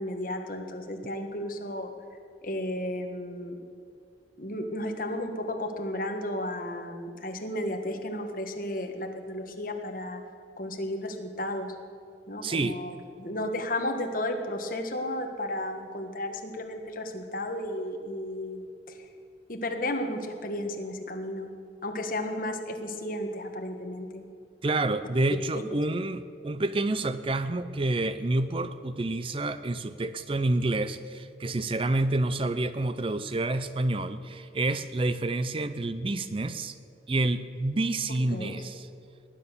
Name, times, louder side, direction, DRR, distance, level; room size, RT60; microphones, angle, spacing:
voice 1, 0.0-1.9 2.4-3.6 4.4-10.2 10.6-11.7 12.3-19.0 19.5-21.5 21.8-24.2 38.3-38.5, left 1 dB, 50° left, 4 dB, 1.6 m, -33 dB
voice 2, 12.4-12.8 24.6-36.8 37.1-38.9, right 2 dB, 30° right, 12 dB, 0.5 m, -28 dB
19.0 x 10.0 x 6.8 m, 2.4 s
head